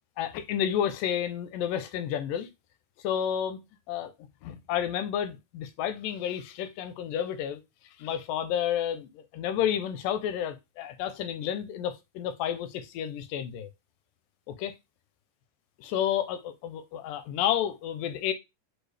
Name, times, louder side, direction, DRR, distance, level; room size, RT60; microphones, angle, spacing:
voice 1, 0.2-2.5 3.0-3.6 3.9-4.1 4.4-7.6 8.0-13.7 14.5-14.7 15.8-18.3, left 10 dB, 80° left, 2.0 m, -31 dB
6.2 x 2.3 x 3.3 m
omnidirectional pair, 4.2 m